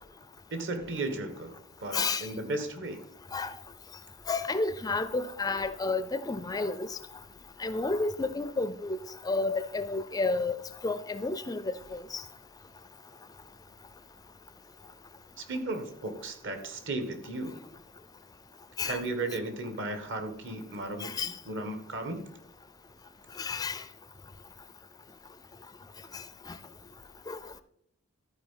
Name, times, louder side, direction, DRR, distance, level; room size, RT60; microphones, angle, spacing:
voice 1, 0.5-3.0 15.4-17.6 18.8-22.2, right 2 dB, 60° right, 1.5 m, -35 dB
voice 2, 1.9-2.3 3.3-3.5 4.3-7.0 7.6-9.0 9.2-10.6 10.8-12.2 18.8-19.0 21.0-21.3 23.4-23.8 26.1-26.6 27.3-27.4, left 3 dB, 15° left, 0.4 m, -31 dB
13.5 x 4.6 x 5.7 m
head